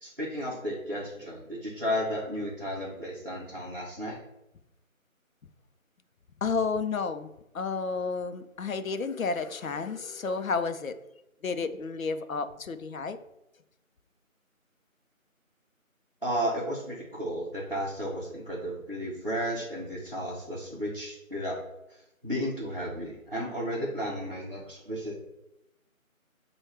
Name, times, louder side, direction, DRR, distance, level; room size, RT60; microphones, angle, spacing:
voice 1, 0.0-4.2 16.2-21.6 21.9-25.1, equal, 40° right, -5 dB, 0.6 m, -33 dB
voice 2, 6.4-11.0 11.4-13.2, left 4 dB, 75° left, 10 dB, 0.5 m, -31 dB
5.8 x 2.3 x 3.2 m, 0.88 s
figure-of-eight pair, 175°, 42 cm